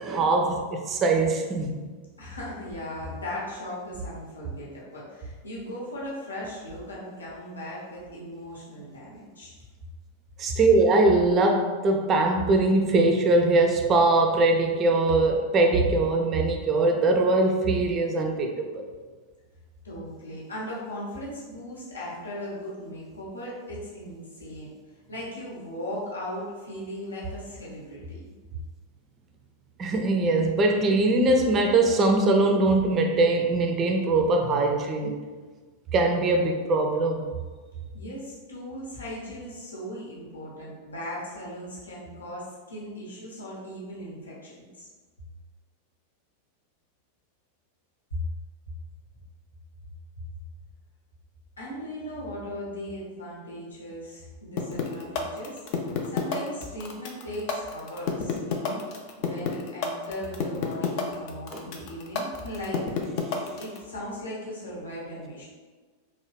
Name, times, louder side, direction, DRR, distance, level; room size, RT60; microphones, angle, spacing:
voice 1, 0.0-1.8 10.4-18.8 29.8-35.2 35.9-37.3, right 2 dB, 30° right, 3 dB, 0.4 m, -22 dB
voice 2, 2.2-9.5 19.8-24.7 25.1-28.2 37.9-44.9 48.1-48.2 51.6-55.6 56.1-62.8 63.6-65.4, left 1 dB, 75° left, -6 dB, 0.9 m, -38 dB
sound 1, 54.6-63.8, left 7 dB, 45° left, 0.4 m, -28 dB
3.1 x 2.1 x 3.1 m, 1.4 s
figure-of-eight pair, 90°, 0 cm